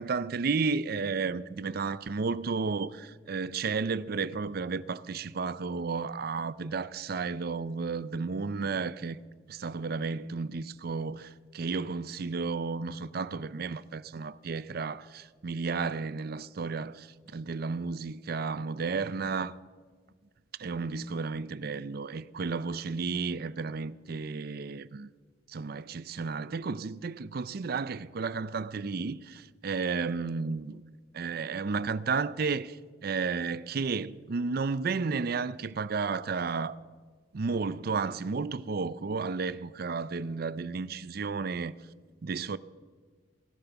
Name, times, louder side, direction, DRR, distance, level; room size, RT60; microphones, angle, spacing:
voice 1, 0.0-9.2 9.5-19.5 20.6-25.1 25.5-30.8 31.1-32.8 33.0-36.7 37.3-41.7 42.2-42.6, right 4 dB, 55° right, 0.5 m, -32 dB
17.5 x 12.0 x 7.0 m
head